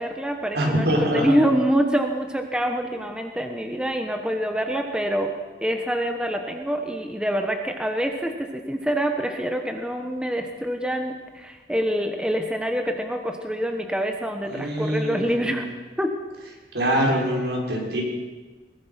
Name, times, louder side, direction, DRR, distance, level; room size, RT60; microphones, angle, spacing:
voice 1, 0.0-5.3 5.6-15.7 16.0-16.1, equal, 5° right, 4 dB, 1.4 m, -26 dB
voice 2, 0.5-1.3 14.5-15.6 16.7-18.0, right 1 dB, 75° right, -2 dB, 6.5 m, -24 dB
23.0 x 21.5 x 6.0 m, 1.3 s
head